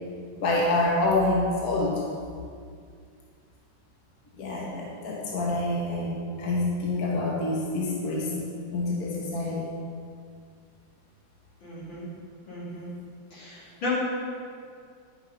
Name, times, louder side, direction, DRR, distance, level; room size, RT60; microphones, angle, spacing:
voice 1, 0.4-2.0 4.4-9.7, left 2 dB, 55° left, -3 dB, 1.5 m, -27 dB
voice 2, 11.6-12.1 12.5-12.9 13.3-13.9, left 1 dB, 80° left, -8 dB, 3.7 m, -36 dB
10.5 x 5.9 x 5.4 m, 2.2 s
omnidirectional pair, 2.1 m